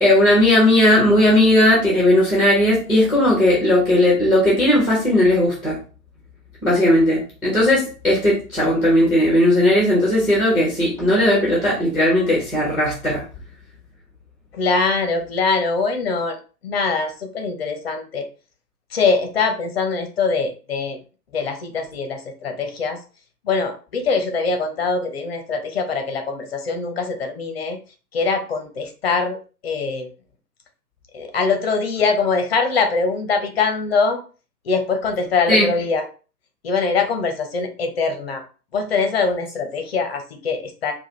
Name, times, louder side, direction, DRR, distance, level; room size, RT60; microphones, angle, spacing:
voice 1, 0.0-5.8 6.6-13.2 35.5-35.7, left 1 dB, ahead, -4 dB, 1.1 m, -17 dB
voice 2, 14.5-16.4 16.6-18.3 18.9-21.0 21.3-23.0 23.4-27.8 28.1-29.4 29.6-30.1 31.1-34.2 34.6-36.1 36.6-38.4 38.7-40.9, left 4 dB, 40° left, 5 dB, 0.8 m, -22 dB
4.8 x 2.4 x 3.1 m, 0.36 s
figure-of-eight pair, 125°, 49 cm